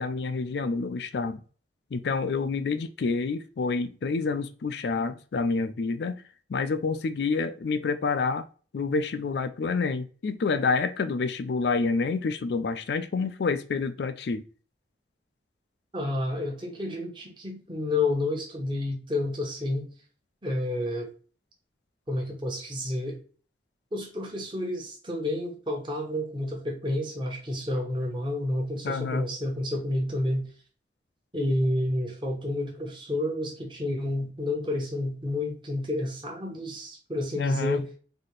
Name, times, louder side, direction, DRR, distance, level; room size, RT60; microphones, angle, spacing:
voice 1, 0.0-1.4 1.9-6.2 6.5-8.4 8.7-14.4 28.8-29.3 37.4-37.8, left 4 dB, 60° left, 0.4 m, -28 dB
voice 2, 15.9-19.9 20.4-21.1 22.1-23.2 23.9-30.5 31.3-37.9, left 1 dB, 25° right, 1.0 m, -30 dB
4.1 x 2.8 x 3.1 m
head